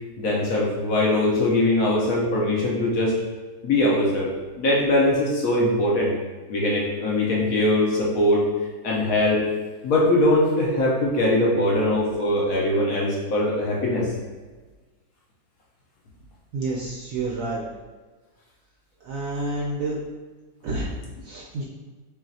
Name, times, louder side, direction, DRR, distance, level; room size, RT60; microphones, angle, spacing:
voice 1, 0.2-3.1 3.6-4.3 4.6-6.1 6.5-8.4 8.8-9.4 9.8-14.1, left 1 dB, 60° left, -4 dB, 1.0 m, -21 dB
voice 2, 16.5-17.6 19.0-20.0 20.6-20.9 21.2-21.6, right 2 dB, 65° right, -4 dB, 0.8 m, -29 dB
5.7 x 2.4 x 2.7 m, 1.3 s
omnidirectional pair, 1.9 m